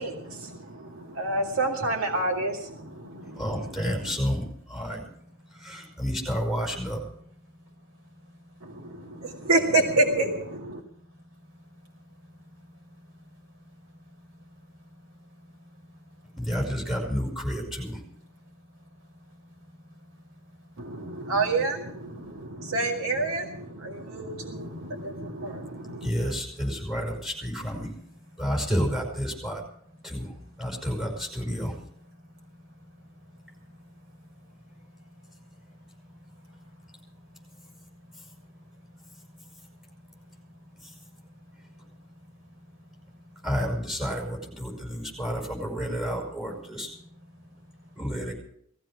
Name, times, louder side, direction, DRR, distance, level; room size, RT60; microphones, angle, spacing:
voice 1, 0.0-3.5 8.6-10.8 20.8-26.1, right 2 dB, 90° right, 1 dB, 2.1 m, -28 dB
voice 2, 3.4-5.1 5.5-7.0 16.4-18.0 26.0-27.9 28.4-29.6 30.0-30.3 30.6-31.8 40.8-40.9 43.4-46.9 48.0-48.3, equal, ahead, 0 dB, 5.5 m, -30 dB
voice 3, 5.5-6.0 7.6-9.5 10.8-16.4 18.4-18.6 19.0-21.4 22.2-22.4 23.9-24.1 24.5-25.5 28.3-28.4 32.1-32.6 32.9-35.5 35.9-38.2 39.0-39.8 40.2-42.1 42.4-43.4 44.9-45.2 47.3-47.5 47.9-48.0, left 1 dB, 65° right, 1 dB, 6.8 m, -54 dB
19.0 x 15.0 x 4.8 m, 0.66 s
head